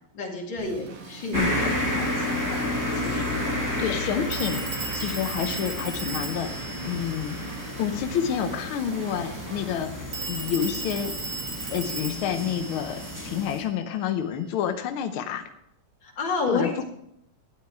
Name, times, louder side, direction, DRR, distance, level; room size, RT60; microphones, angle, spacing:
voice 1, 0.1-1.4 1.9-3.4 16.0-16.8, left 3 dB, 45° left, -1 dB, 2.8 m, -31 dB
Drum kit / Drum, 0.6-9.7, right 4 dB, 75° right, 3.0 m, -44 dB
voice 2, 1.3-1.7 3.8-4.7 4.9-7.4 7.8-9.9 10.3-11.1 11.7-15.5 16.5-16.8, left 9 dB, 80° left, 7 dB, 1.2 m, -29 dB
sound 1, 1.3-13.6, left 1 dB, 10° right, 1.6 m, -31 dB
Telephone, 2.1-2.2 4.3-8.0 10.1-13.8, right 3 dB, 45° right, 1.1 m, -36 dB
12.5 x 9.7 x 4.8 m, 0.77 s
omnidirectional pair, 3.3 m